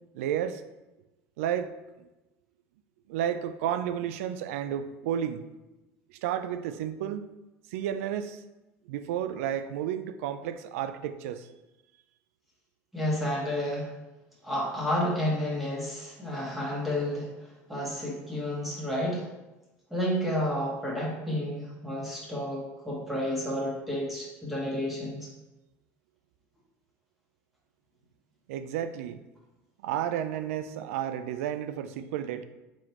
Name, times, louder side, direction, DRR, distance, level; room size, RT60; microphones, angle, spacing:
voice 1, 0.1-0.6 1.4-2.1 3.1-5.5 6.1-7.3 7.7-8.4 8.9-11.5 28.5-29.2 29.8-32.4, right 10 dB, 85° right, 10 dB, 0.3 m, -32 dB
voice 2, 12.9-13.9 14.4-19.3 19.9-25.3, equal, 5° right, -5 dB, 1.5 m, -31 dB
4.8 x 3.7 x 3.0 m, 1.0 s
supercardioid pair, 105°, 7 cm